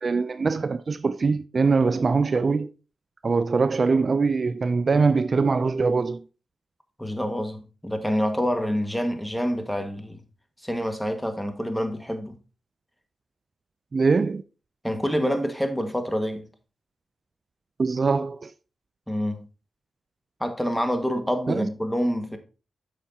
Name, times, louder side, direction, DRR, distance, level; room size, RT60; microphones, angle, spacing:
voice 1, 0.0-2.7 3.2-6.2 13.9-14.4 17.8-18.5 21.5-21.7, right 4 dB, 50° right, 0.4 m, -22 dB
voice 2, 7.0-10.2 10.6-12.4 14.8-16.5 19.1-19.4 20.4-22.4, equal, 5° left, 1.6 m, -27 dB
8.7 x 6.7 x 2.8 m
supercardioid pair, 40°, 0 cm